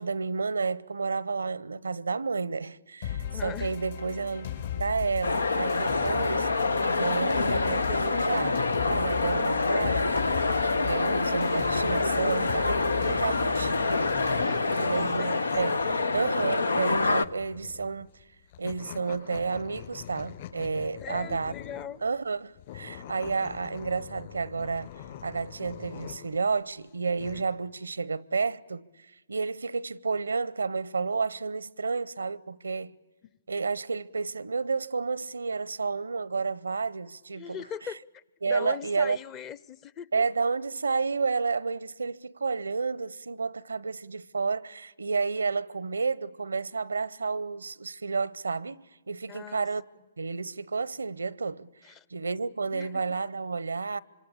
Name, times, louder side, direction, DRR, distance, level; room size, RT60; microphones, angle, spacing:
voice 1, 0.0-4.5 4.8-6.5 7.0-10.2 10.8-13.8 14.8-15.8 16.1-18.1 18.6-21.5 22.0-24.9 25.2-28.9 29.3-32.9 33.5-37.6 38.4-39.2 40.1-49.8 50.2-51.7 52.1-54.0, right 4 dB, 90° right, 0.8 m, -31 dB
sound 1, 3.0-14.4, left 9 dB, 65° left, 5.2 m, -37 dB
voice 2, 3.3-3.7 14.4-14.9 15.2-15.7 21.0-22.0 37.3-40.1 49.3-49.7 51.8-52.0 52.7-53.2, left 8 dB, 25° left, 0.8 m, -40 dB
sound 2, 5.2-17.2, left 3 dB, 90° left, 0.9 m, -26 dB
sound 3, 12.7-22.0 22.5-26.4 26.8-27.4, left 10 dB, 50° left, 5.9 m, -44 dB
26.0 x 25.5 x 8.6 m
hypercardioid pair, 135°, 0 cm